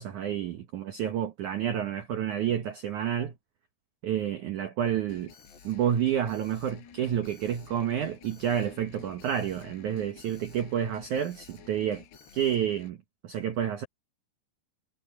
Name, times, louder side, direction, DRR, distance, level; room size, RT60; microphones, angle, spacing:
voice 1, 0.0-3.3 4.0-5.3 5.6-12.0 12.3-13.0 13.2-13.8, right 9 dB, 90° right, 1.7 m, -29 dB
Alarm, 5.1-12.9, left 6 dB, 65° left, 6.2 m, -52 dB
omnidirectional pair, 5.3 m